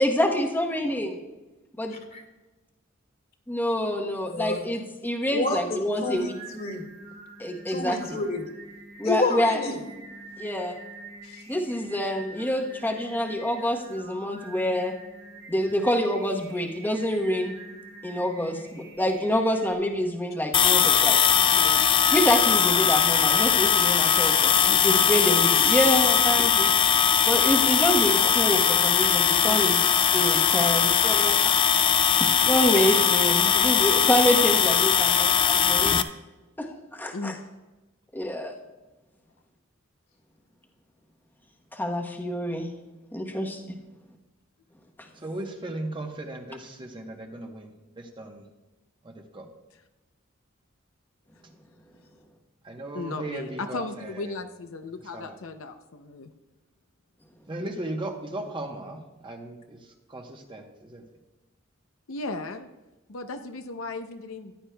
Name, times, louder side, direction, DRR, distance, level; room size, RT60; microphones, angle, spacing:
voice 1, 0.0-1.1 1.8-1.9 3.5-6.3 7.4-8.0 9.0-9.6 10.4-10.8 11.5-14.9 15.5-17.5 18.0-21.4 22.1-26.7 27.2-29.8 30.1-31.6 32.2-35.9 36.6-37.3 38.1-38.5 41.7-42.7 43.1-43.8, equal, 10° left, 0 dB, 1.0 m, -26 dB
voice 2, 4.3-4.6 5.3-6.9 7.7-8.5 9.0-9.8 11.2-11.4, left 2 dB, 50° left, 2 dB, 1.9 m, -29 dB
Singing, 5.7-19.7, right 2 dB, 55° right, 2.1 m, -46 dB
sound 1, 20.5-36.0, left 8 dB, 25° left, 0.3 m, -20 dB
voice 3, 21.5-21.9 24.6-25.2 29.4-29.8 37.1-37.4 43.3-43.4 52.9-56.3 62.1-62.7 63.1-64.5, left 3 dB, 75° left, 7 dB, 0.6 m, -36 dB
voice 4, 45.1-48.5 49.0-49.5 52.6-54.4 54.9-55.4 57.5-61.0, right 1 dB, 25° right, 3 dB, 1.0 m, -37 dB
14.5 x 10.5 x 2.3 m, 1.1 s
head